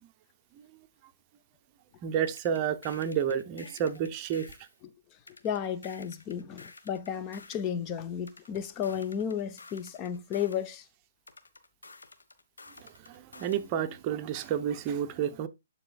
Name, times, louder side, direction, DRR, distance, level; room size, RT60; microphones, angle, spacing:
voice 1, 2.0-4.5 12.8-15.5, right 8 dB, 30° right, 0.7 m, -30 dB
sound 1, 2.3-4.7 5.3-7.7 8.3-10.7 11.3-13.7, left 3 dB, 90° left, 1.4 m, -51 dB
voice 2, 5.4-10.9, left 8 dB, 25° left, 0.6 m, -33 dB
12.5 x 4.1 x 2.4 m
hypercardioid pair, 145°, 0 cm